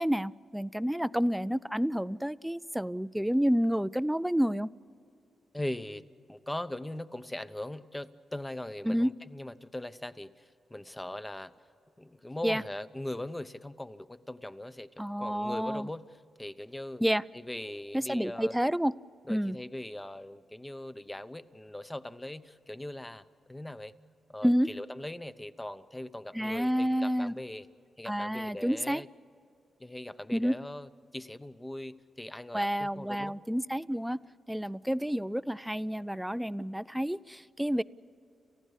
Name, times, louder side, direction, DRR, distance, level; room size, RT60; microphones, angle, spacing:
voice 1, 0.0-4.7 8.8-9.1 12.4-12.6 15.0-15.9 17.0-17.2 17.9-18.9 19.3-19.6 24.4-24.7 26.3-27.3 28.1-29.0 30.3-30.6 32.5-34.2 34.5-37.8, equal, 5° right, 18 dB, 0.4 m, -29 dB
voice 2, 5.5-6.0 6.3-11.5 12.0-14.9 15.2-16.1 16.4-17.0 17.3-18.6 19.3-23.9 24.3-27.7 28.0-29.1 29.8-33.4, left 1 dB, 15° left, 12 dB, 0.8 m, -40 dB
29.5 x 15.0 x 8.3 m, 2.7 s
cardioid pair, 75°, 0 cm